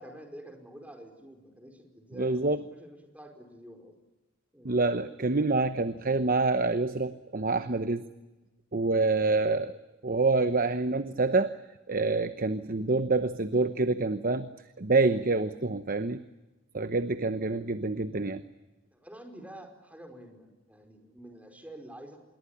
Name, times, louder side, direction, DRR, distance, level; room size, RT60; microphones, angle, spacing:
voice 1, 0.0-3.9 4.5-4.7 8.0-8.2 18.9-22.2, right 1 dB, 5° right, 4 dB, 4.9 m, -48 dB
voice 2, 2.2-2.6 4.6-8.0 8.7-9.8 10.0-11.6 11.9-14.5 14.8-16.2 16.7-18.4, right 3 dB, 40° right, 11 dB, 0.9 m, -27 dB
26.5 x 22.0 x 9.8 m, 1.1 s
head